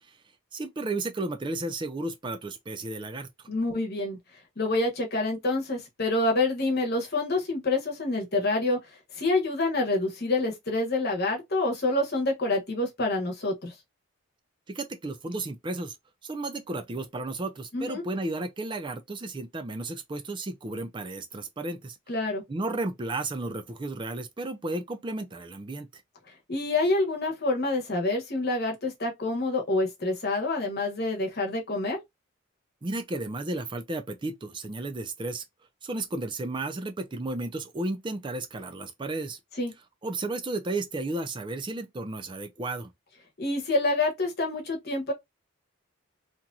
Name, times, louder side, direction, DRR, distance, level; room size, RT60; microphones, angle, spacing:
voice 1, 0.5-3.3 14.7-16.0 16.2-22.0 22.5-25.9 32.8-35.4 35.8-39.4 40.0-42.9, right 2 dB, 20° right, 0.4 m, -33 dB
voice 2, 3.5-4.2 4.6-8.8 9.2-13.7 17.7-18.0 22.1-22.4 26.5-32.0 39.6-39.7 43.4-45.1, left 2 dB, 45° left, 1.0 m, -27 dB
2.9 x 2.6 x 2.3 m
head